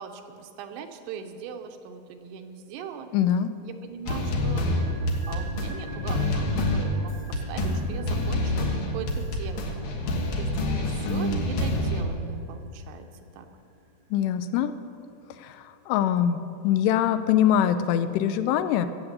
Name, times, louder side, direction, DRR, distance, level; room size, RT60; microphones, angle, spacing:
voice 1, 0.0-3.1 3.6-4.7 5.3-9.7 10.0-13.1 13.3-13.5, right 6 dB, 85° right, 6 dB, 3.0 m, -40 dB
voice 2, 3.1-3.5 14.1-14.7 15.4-16.4 16.6-18.9, left 10 dB, 90° left, 11 dB, 2.8 m, -23 dB
sound 1, 4.1-12.0, left 1 dB, 60° left, 2.7 m, -27 dB
sound 2, 4.2-14.4 14.7-14.8, right 1 dB, 55° right, 1.1 m, -44 dB
14.5 x 8.1 x 8.0 m, 2.5 s
omnidirectional pair, 4.8 m